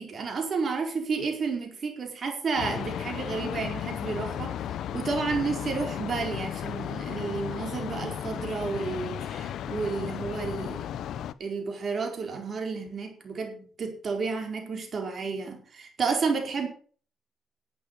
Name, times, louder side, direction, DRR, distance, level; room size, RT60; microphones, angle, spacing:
voice 1, 0.0-4.6 4.9-10.9 11.4-16.7, right 4 dB, 50° right, 3 dB, 4.5 m, -31 dB
sound 1, 2.6-11.3, left 10 dB, 75° left, 0.7 m, -34 dB
11.5 x 8.5 x 6.9 m, 0.43 s
cardioid pair, 90°, 0 cm